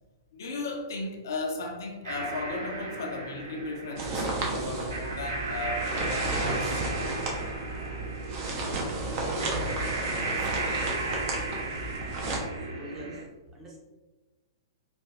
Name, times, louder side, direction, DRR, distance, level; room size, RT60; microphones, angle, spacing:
voice 1, 0.3-7.4 10.4-10.5, left 2 dB, 60° left, 0.6 m, -36 dB
sound 1, 2.0-13.2, right 2 dB, 65° right, 1.4 m, -35 dB
sound 2, 4.0-12.4, right 2 dB, 40° right, 0.8 m, -33 dB
voice 2, 9.5-9.9 11.0-11.7 12.6-13.8, equal, 15° right, 0.8 m, -46 dB
4.2 x 2.5 x 2.3 m
figure-of-eight pair, 110°, 2 cm